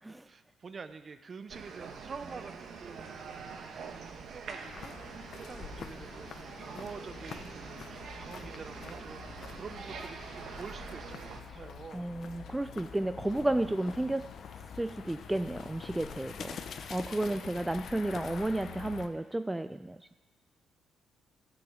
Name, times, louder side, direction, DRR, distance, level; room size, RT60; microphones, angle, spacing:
voice 1, 0.1-3.1 3.7-12.6 17.1-17.5, right 5 dB, 40° right, 12 dB, 0.7 m, -48 dB
sound 1, 1.5-11.4, right 5 dB, 65° right, 1.2 m, -45 dB
sound 2, 4.6-19.1, left 6 dB, 60° left, 0.7 m, -46 dB
voice 2, 11.9-14.4 14.8-16.6 16.9-20.2, right 1 dB, 10° right, 11 dB, 0.3 m, -32 dB
13.0 x 6.1 x 7.9 m, 1.2 s
cardioid pair, 90°, 0 cm